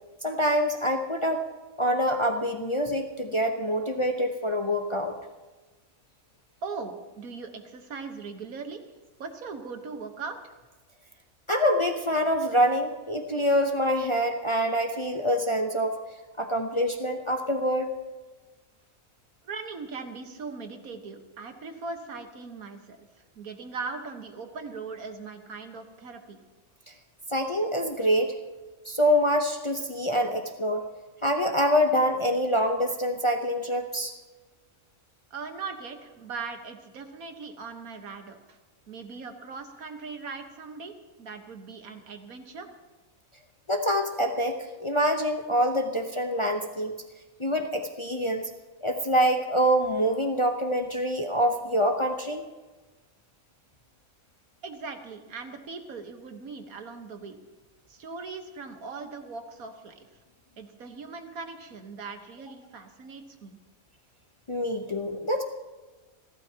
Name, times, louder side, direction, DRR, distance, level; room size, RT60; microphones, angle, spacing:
voice 1, 0.2-1.4 1.8-5.1 11.5-16.0 16.4-17.9 26.9-27.0 27.3-28.4 28.8-30.9 31.2-34.1 43.7-47.0 47.4-48.5 48.8-52.4 64.5-65.4, equal, 25° left, 4 dB, 0.7 m, -25 dB
voice 2, 6.6-8.8 9.2-10.6 19.4-26.4 35.3-38.6 38.9-40.9 41.2-42.7 54.6-57.4 57.9-60.1 60.6-63.6, right 4 dB, 80° right, 6 dB, 1.8 m, -39 dB
29.5 x 12.5 x 2.9 m, 1.3 s
omnidirectional pair, 1.5 m